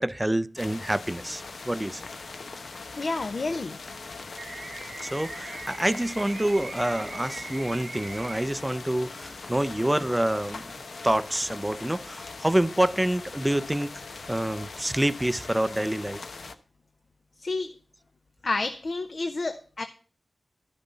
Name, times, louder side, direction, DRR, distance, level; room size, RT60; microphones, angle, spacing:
voice 1, 0.0-2.0 5.0-10.7 11.0-14.0 14.3-16.2, right 1 dB, 10° right, 0.4 m, -27 dB
sound 1, 0.6-16.5, left 4 dB, 75° left, 0.9 m, -41 dB
voice 2, 3.0-3.9 17.4-17.8 18.4-19.8, left 3 dB, 55° left, 0.6 m, -30 dB
sound 2, 4.4-8.4, right 3 dB, 50° right, 0.7 m, -40 dB
12.5 x 6.8 x 5.4 m
wide cardioid pair, 115°, 0 cm